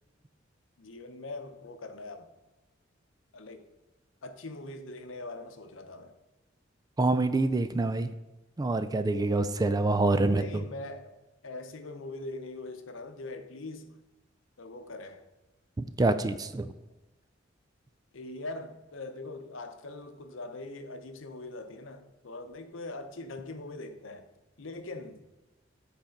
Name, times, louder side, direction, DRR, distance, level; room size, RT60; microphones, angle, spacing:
voice 1, 0.8-2.3 3.3-3.7 4.2-6.1 10.2-13.9 14.6-15.2 18.1-24.2 24.6-25.2, left 2 dB, 80° left, 0.8 m, -42 dB
voice 2, 7.0-8.1 8.6-10.6 15.8-16.7, right 2 dB, 20° right, 0.3 m, -26 dB
8.1 x 4.2 x 5.0 m
head